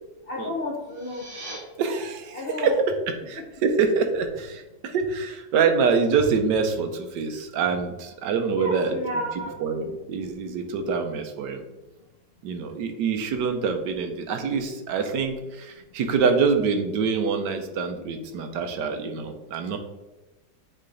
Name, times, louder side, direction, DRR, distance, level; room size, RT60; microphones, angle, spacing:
voice 1, 0.3-1.2 2.3-2.7 3.4-3.5 8.5-9.5, left 1 dB, 60° left, -2 dB, 0.6 m, -31 dB
sound 1, 0.8-1.6, right 1 dB, 55° right, 2.3 m, -40 dB
voice 2, 1.8-2.8 3.3-9.0 9.5-11.6 12.4-19.8, right 5 dB, 75° right, 6 dB, 1.4 m, -25 dB
8.6 x 3.3 x 3.9 m, 1.1 s
omnidirectional pair, 2.0 m